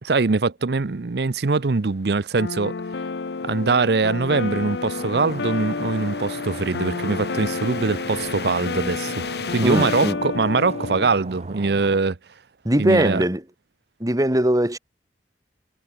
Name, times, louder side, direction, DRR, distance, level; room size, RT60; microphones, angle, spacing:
voice 1, 0.0-2.7 3.4-12.2 12.8-13.2, right 4 dB, 65° right, 0.7 m, -22 dB
sound 1, 1.1-10.1, left 6 dB, 65° left, 6.9 m, -39 dB
sound 2, 2.4-11.1, left 4 dB, 80° left, 0.6 m, -30 dB
Stream, 5.0-12.0, right 1 dB, 40° right, 3.7 m, -39 dB
voice 2, 9.6-10.2 12.6-13.4 14.0-14.8, right 1 dB, 20° right, 2.0 m, -20 dB
head